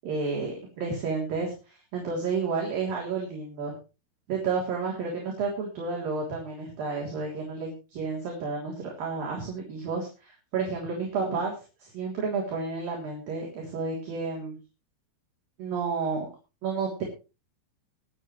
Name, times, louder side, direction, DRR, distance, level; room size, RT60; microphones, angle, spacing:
voice 1, 0.0-3.7 4.3-11.5 11.8-14.6 15.6-16.3 16.6-17.0, right 4 dB, 50° right, -2 dB, 4.8 m, -31 dB
23.0 x 9.0 x 3.2 m, 0.32 s
omnidirectional pair, 5.6 m